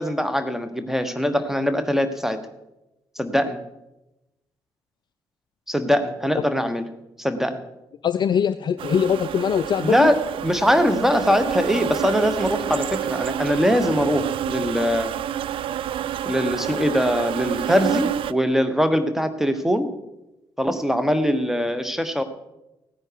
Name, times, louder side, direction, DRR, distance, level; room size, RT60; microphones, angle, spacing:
voice 1, 0.0-2.4 3.2-3.6 5.7-6.8 7.2-7.6 9.8-15.1 16.2-19.9 20.6-22.2, equal, 5° right, 10 dB, 1.3 m, -22 dB
voice 2, 8.0-10.1, left 8 dB, 40° left, 14 dB, 0.4 m, -22 dB
sound 1, 8.8-18.3, right 10 dB, 50° right, 0.4 m, -28 dB
16.0 x 9.7 x 4.8 m, 0.95 s
figure-of-eight pair, 40°, 12 cm